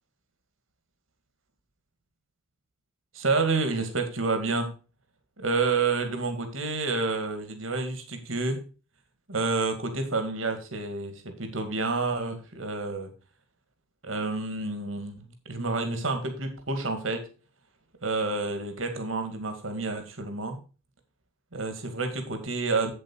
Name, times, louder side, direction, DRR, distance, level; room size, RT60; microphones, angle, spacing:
voice 1, 3.1-4.7 5.4-8.6 9.3-13.1 14.0-17.3 18.0-20.6 21.5-22.9, right 3 dB, 80° right, 6 dB, 2.1 m, -29 dB
8.3 x 7.7 x 4.6 m, 0.33 s
head